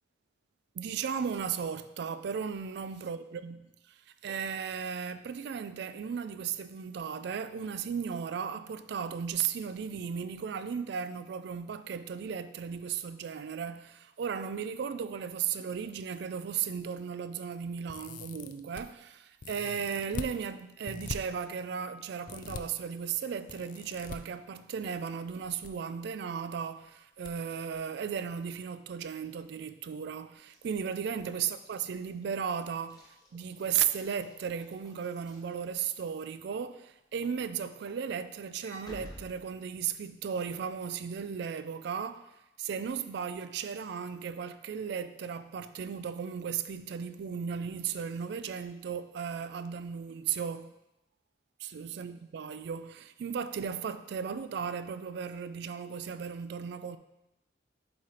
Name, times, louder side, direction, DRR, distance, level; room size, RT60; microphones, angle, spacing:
voice 1, 0.8-3.7 4.2-42.3 42.6-50.7 51.6-57.0, right 7 dB, 60° right, 0.3 m, -35 dB
sound 1, 17.9-18.8 19.4-20.3 20.9-21.2 22.3-22.6 23.5-24.2 25.3-25.7 26.0-26.1 27.2-27.3 27.7-27.8, left 4 dB, 45° left, 0.3 m, -41 dB
Walk footsteps / Slam, 30.4-36.1 36.6-36.9 37.2-40.2, equal, 20° left, 1.0 m, -54 dB
7.7 x 3.2 x 4.3 m
head